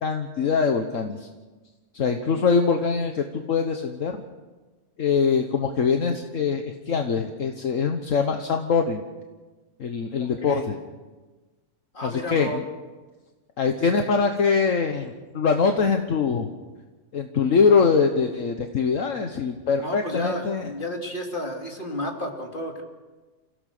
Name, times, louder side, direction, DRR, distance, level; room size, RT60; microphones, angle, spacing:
voice 1, 0.0-1.3 1.9-4.2 5.0-9.0 9.8-10.8 12.0-12.6 13.6-16.5 17.1-20.7, left 5 dB, 65° left, 5 dB, 1.5 m, -23 dB
voice 2, 10.2-10.6 11.9-12.6 19.8-22.8, left 1 dB, 35° left, 1 dB, 3.0 m, -32 dB
28.5 x 16.5 x 6.7 m, 1.3 s
omnidirectional pair, 1.5 m